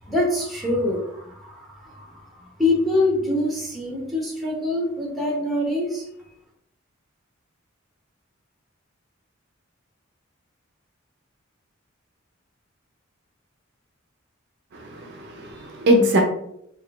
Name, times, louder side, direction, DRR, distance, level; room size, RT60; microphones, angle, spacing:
voice 1, 0.0-6.1, left 2 dB, ahead, 0.8 m, -25 dB
voice 2, 14.7-16.2, equal, 55° right, 0.5 m, -21 dB
3.5 x 2.5 x 2.4 m
head